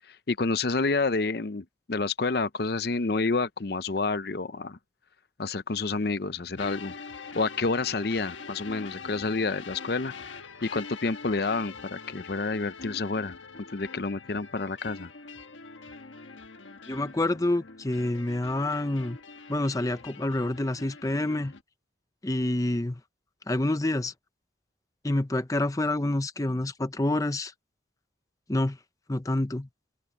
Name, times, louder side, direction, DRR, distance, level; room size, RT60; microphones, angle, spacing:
voice 1, 0.1-4.8 5.4-6.9 7.3-10.1 10.6-13.4 13.7-15.1, left 3 dB, 55° left, 0.7 m, -29 dB
sound 1, 6.6-21.6, left 4 dB, 90° left, 1.5 m, -44 dB
voice 2, 16.9-19.2 19.5-21.5 22.2-23.0 23.5-24.1 25.0-27.5 28.5-28.8 29.1-29.7, left 1 dB, 20° left, 0.6 m, -27 dB
open air
head